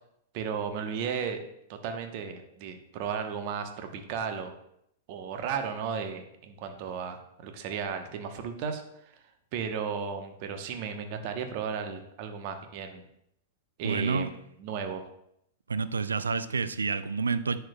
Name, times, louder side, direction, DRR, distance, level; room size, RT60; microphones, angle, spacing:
voice 1, 0.3-1.4 1.7-4.5 5.1-8.8 9.5-13.0 13.8-15.1, right 6 dB, 50° right, 6 dB, 0.9 m, -34 dB
voice 2, 13.8-14.3 15.7-17.6, right 4 dB, 85° right, 13 dB, 0.4 m, -29 dB
10.0 x 4.5 x 2.2 m, 0.75 s
hypercardioid pair, 105°, 0 cm